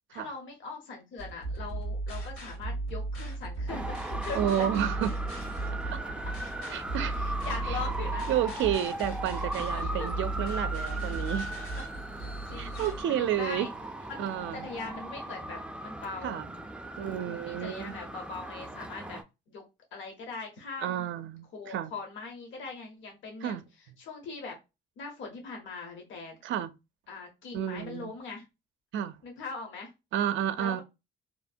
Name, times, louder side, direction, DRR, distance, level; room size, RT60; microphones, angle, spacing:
voice 1, 0.1-4.7 7.1-8.3 9.7-10.1 12.2-13.7 14.1-16.4 17.0-19.2 19.5-19.6 19.9-21.1 21.5-23.6 24.0-24.6 25.0-26.4 27.1-28.4 29.2-29.9 30.6-30.8, left 4 dB, 75° left, 0.9 m, -41 dB
sound 1, 1.2-13.0, right 2 dB, 90° left, 1.7 m, -36 dB
Traffic noise roadway noise, 3.7-19.2, right 1 dB, 5° right, 0.3 m, -38 dB
voice 2, 4.3-5.2 5.9-6.0 6.7-7.1 7.7-7.8 8.3-11.5 12.5-13.7 14.2-14.7 16.2-16.5 17.0-18.0 20.8-21.9 23.4-23.6 26.4-26.7 27.5-28.1 28.9-29.2 30.1-30.8, right 10 dB, 70° right, 0.4 m, -31 dB
3.0 x 2.1 x 2.5 m
cardioid pair, 90°, 20 cm